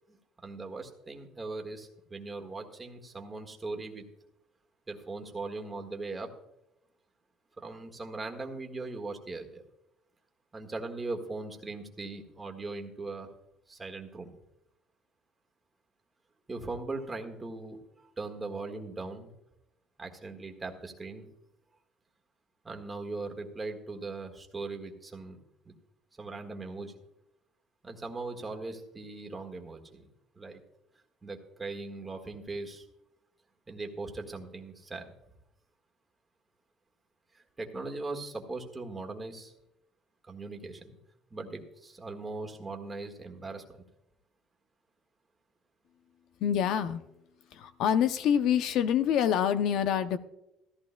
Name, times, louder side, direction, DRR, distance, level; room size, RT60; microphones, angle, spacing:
voice 1, 0.1-4.0 4.9-6.3 7.6-9.6 10.5-13.3 13.7-14.3 16.5-19.3 20.0-21.3 22.6-25.4 25.6-25.7 26.2-26.9 27.8-30.1 30.3-30.6 31.2-32.8 33.7-35.1 37.3-39.5 40.3-41.0 41.3-43.6, right 3 dB, 20° right, 3 dB, 1.5 m, -39 dB
voice 2, 46.4-47.0 47.5-50.2, left 9 dB, 65° left, 12 dB, 0.6 m, -26 dB
15.0 x 14.0 x 2.2 m, 0.86 s
cardioid pair, 130°, 0 cm